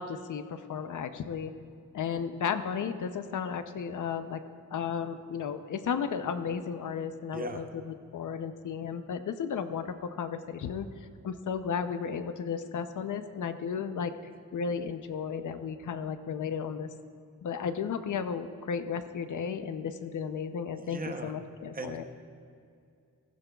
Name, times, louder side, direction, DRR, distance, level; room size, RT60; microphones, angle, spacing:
voice 1, 0.0-1.5 1.9-4.4 4.7-10.9 11.2-14.1 14.5-16.9 17.4-22.0, left 6 dB, 65° left, 9 dB, 0.6 m, -34 dB
voice 2, 7.3-7.6 20.8-21.3 21.7-22.0, right 3 dB, 25° right, 5 dB, 0.8 m, -38 dB
15.5 x 14.5 x 2.3 m, 2.4 s
wide cardioid pair, 125°, 33 cm